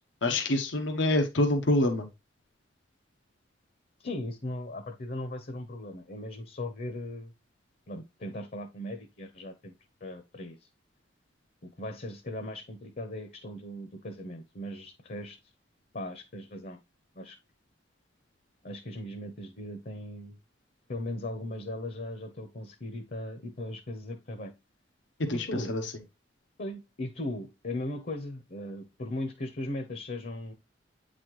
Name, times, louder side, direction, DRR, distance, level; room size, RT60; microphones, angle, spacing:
voice 1, 0.2-2.1 25.2-25.8, left 1 dB, 90° left, 0.9 m, -26 dB
voice 2, 4.0-7.3 7.9-9.7 10.0-10.7 11.6-15.5 15.9-16.8 17.2-17.4 18.6-20.4 20.9-24.5 25.3-25.8 26.6-30.5, left 1 dB, 50° left, 0.8 m, -38 dB
8.4 x 4.2 x 3.1 m
head